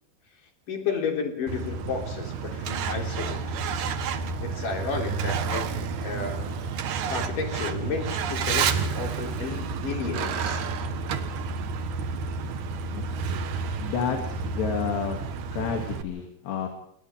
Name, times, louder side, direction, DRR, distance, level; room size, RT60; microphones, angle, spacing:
voice 1, 0.7-3.7 4.4-6.5 6.8-8.7 8.9-10.7, left 5 dB, 55° left, 3 dB, 4.8 m, -32 dB
Truck, 1.5-16.0, right 5 dB, 60° right, 2.4 m, -30 dB
voice 2, 13.8-15.2 15.5-16.7, left 6 dB, 85° left, 3 dB, 4.8 m, -30 dB
29.0 x 25.0 x 3.6 m, 0.68 s
omnidirectional pair, 4.8 m